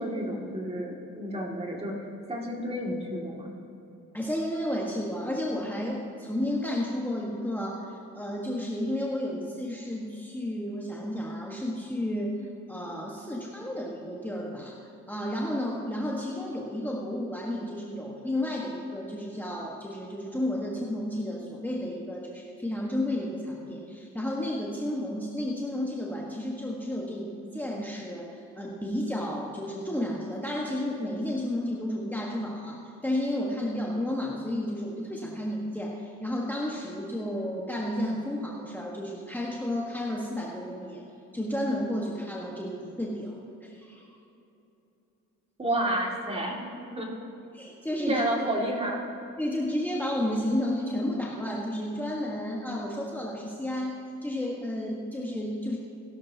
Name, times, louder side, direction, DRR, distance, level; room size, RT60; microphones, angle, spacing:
voice 1, 0.0-1.9 2.3-3.5 45.6-47.1 48.1-49.0, right 1 dB, 20° right, -1 dB, 2.3 m, -30 dB
voice 2, 4.1-12.4 12.7-14.8 15.1-41.0 41.3-44.1 47.5-48.2 49.4-55.8, left 1 dB, 5° left, -3 dB, 1.4 m, -32 dB
16.5 x 12.0 x 2.8 m, 2.9 s
cardioid pair, 90°, 30 cm